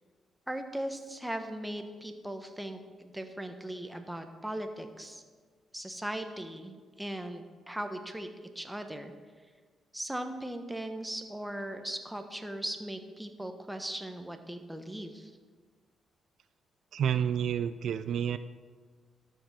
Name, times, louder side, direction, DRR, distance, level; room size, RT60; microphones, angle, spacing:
voice 1, 0.5-5.2 5.7-8.3 8.5-9.1 9.9-15.3, right 1 dB, 5° right, 6 dB, 1.3 m, -38 dB
voice 2, 16.9-18.4, right 8 dB, 70° right, 12 dB, 0.3 m, -29 dB
12.5 x 5.2 x 6.1 m, 1.5 s
supercardioid pair, 50°, 0 cm